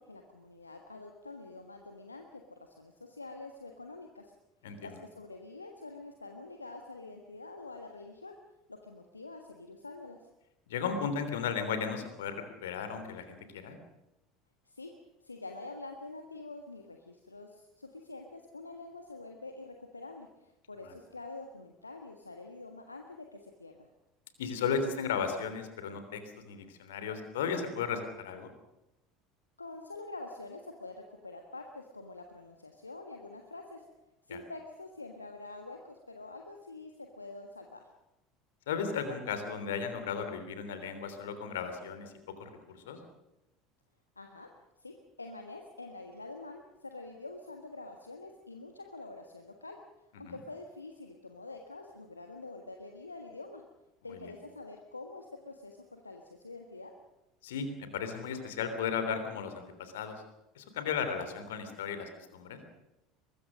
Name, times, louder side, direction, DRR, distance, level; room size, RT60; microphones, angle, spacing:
voice 1, 0.0-4.3 4.8-8.4 8.7-10.2 14.6-14.9 15.2-23.7 29.6-33.8 34.3-37.8 44.2-44.5 44.8-49.8 50.2-53.6 54.0-56.9, left 2 dB, 85° left, 4 dB, 1.5 m, -46 dB
voice 2, 4.6-5.0 10.7-12.4 12.6-13.8 20.8-21.0 24.4-26.2 26.5-28.5 34.3-34.4 38.7-43.0 50.2-50.4 54.1-54.3 57.4-57.7 57.9-60.1 60.5-62.6, left 6 dB, 65° left, 8 dB, 3.4 m, -35 dB
23.5 x 21.0 x 6.5 m, 0.97 s
figure-of-eight pair, 70°, 0 cm